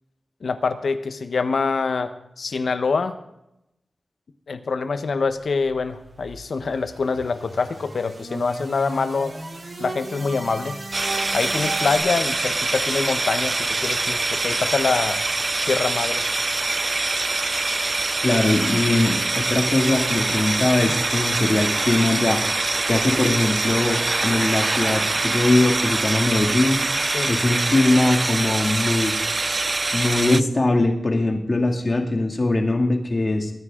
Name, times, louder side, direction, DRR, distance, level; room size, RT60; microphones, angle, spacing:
voice 1, 0.4-3.2 4.5-9.3 9.8-10.8 11.3-15.2 15.6-16.2 27.1-27.3, left 4 dB, 75° left, 10 dB, 1.1 m, -25 dB
sound 1, 5.6-12.0, right 2 dB, 55° right, 3.3 m, -36 dB
sound 2, 10.9-30.4, right 3 dB, 40° right, 0.4 m, -24 dB
voice 2, 18.2-22.4 22.9-26.8 27.3-29.1 29.9-33.5, left 2 dB, 40° left, 3 dB, 2.4 m, -21 dB
22.5 x 9.6 x 3.8 m, 0.85 s
wide cardioid pair, 70°, 0 cm